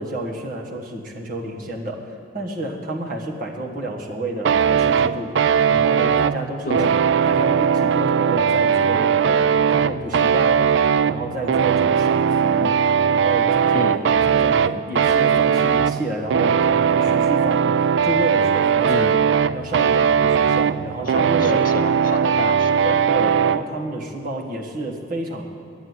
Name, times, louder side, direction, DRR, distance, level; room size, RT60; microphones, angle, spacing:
voice 1, 0.0-2.0 2.3-5.3 5.7-6.9 7.2-12.8 13.1-19.1 19.5-21.7 23.1-25.4, right 1 dB, 45° right, -1 dB, 1.6 m, -30 dB
sound 1, 4.4-23.6, right 7 dB, 70° right, 0.3 m, -19 dB
voice 2, 6.7-7.0 13.7-14.0 18.9-19.2 21.1-23.0, left 3 dB, 45° left, 9 dB, 0.5 m, -30 dB
10.5 x 8.6 x 9.5 m, 2.5 s
head